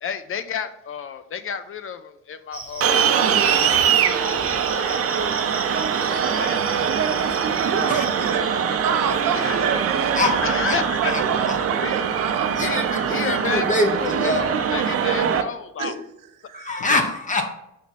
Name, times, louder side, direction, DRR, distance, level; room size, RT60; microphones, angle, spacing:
voice 1, 0.0-3.2 3.5-5.3 5.7-7.3 8.2-8.8 9.3-9.7 10.4-11.1 11.8-11.9 12.6-12.8 13.1-15.9, left 7 dB, 45° left, 11 dB, 0.4 m, -32 dB
Cricket, 2.5-8.3, right 2 dB, 15° right, 1.1 m, -37 dB
sound 1, 2.8-15.4, right 7 dB, 45° right, 0.6 m, -22 dB
voice 2, 7.6-10.2 10.9-12.5 15.8-16.0 16.4-16.7, right 7 dB, 85° right, 6 dB, 1.0 m, -28 dB
voice 3, 11.1-11.6 12.6-14.5 16.5-17.5, left 2 dB, 25° left, 5 dB, 0.9 m, -24 dB
6.0 x 4.2 x 4.2 m, 0.84 s
cardioid pair, 150°, 32 cm